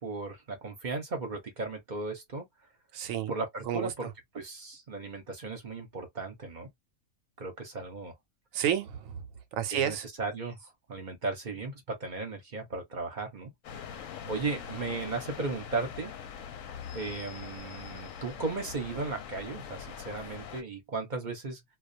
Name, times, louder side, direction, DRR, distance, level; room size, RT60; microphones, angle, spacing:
voice 1, 0.0-2.5 3.3-4.1 4.3-6.7 7.4-8.1 9.7-13.5 14.3-16.1 16.9-21.6, right 3 dB, 40° right, 0.7 m, -36 dB
voice 2, 2.9-3.3 3.7-4.1 8.5-9.2 9.5-10.1, right 10 dB, 70° right, 0.9 m, -31 dB
sound 1, 13.6-20.6, left 7 dB, 65° left, 0.9 m, -42 dB
2.3 x 2.3 x 2.5 m
omnidirectional pair, 1.6 m